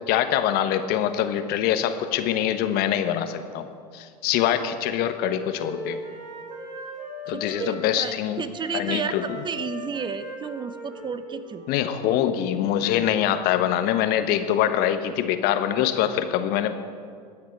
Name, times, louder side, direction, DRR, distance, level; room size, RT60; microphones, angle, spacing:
voice 1, 0.1-3.7 3.9-6.0 7.3-8.4 8.7-9.2 11.7-16.7, left 10 dB, 50° left, 9 dB, 1.2 m, -24 dB
Wind instrument woodwind instrument, 4.6-8.2 8.5-12.3, equal, 85° right, 3.5 m, -40 dB
voice 2, 7.2-11.6, right 6 dB, 20° right, 12 dB, 0.9 m, -32 dB
22.0 x 9.3 x 4.7 m, 2.1 s
hypercardioid pair, 90°, 21 cm